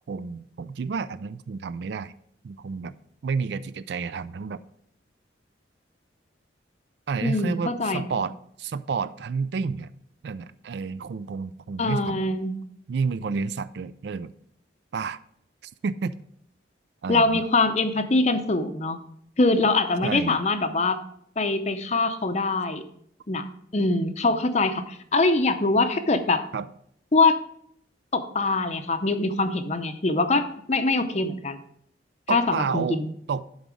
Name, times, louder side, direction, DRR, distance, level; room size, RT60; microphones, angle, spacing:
voice 1, 0.1-2.1 2.4-2.9 3.2-4.6 7.1-8.3 8.6-9.9 10.2-12.4 12.9-14.3 14.9-15.2 15.6-16.1 17.0-17.4 20.0-20.4 26.5-26.7 32.3-33.0 33.3-33.4, right 5 dB, 60° right, 15 dB, 0.3 m, -30 dB
voice 2, 7.2-8.0 11.8-12.6 17.1-19.0 19.4-21.0 21.4-22.8 23.3-23.4 23.7-26.4 27.1-27.4 28.1-31.6 32.3-33.1, left 3 dB, 35° left, 9 dB, 0.6 m, -23 dB
11.0 x 4.0 x 4.8 m, 0.70 s
head